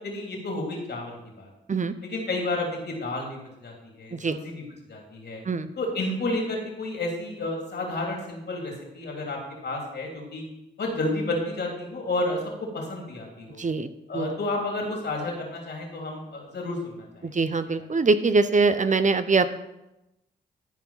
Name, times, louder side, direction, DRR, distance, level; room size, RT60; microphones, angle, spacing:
voice 1, 0.0-1.5 2.0-5.4 5.8-9.4 9.6-10.4 10.8-13.6 14.1-17.1 17.8-17.9, left 2 dB, 60° left, 0 dB, 3.3 m, -31 dB
voice 2, 13.6-13.9 14.1-14.3 17.2-19.5, right 3 dB, 40° right, 12 dB, 0.7 m, -23 dB
12.5 x 4.7 x 5.8 m, 0.93 s
supercardioid pair, 45°, 19 cm